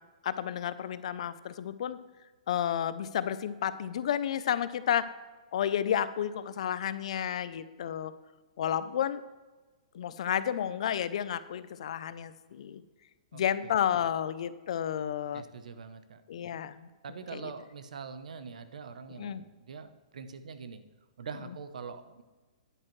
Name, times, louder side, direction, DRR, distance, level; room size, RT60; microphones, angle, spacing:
voice 1, 0.2-2.0 2.5-5.1 5.5-8.1 8.6-9.2 9.9-12.8 13.3-15.4 16.3-16.9 17.3-17.5 19.2-19.4, left 9 dB, 60° left, 15 dB, 0.5 m, -31 dB
voice 2, 15.3-16.2 17.0-20.8 21.2-22.2, right 5 dB, 85° right, 11 dB, 0.8 m, -43 dB
9.8 x 8.8 x 3.2 m, 1.3 s
hypercardioid pair, 165°, 4 cm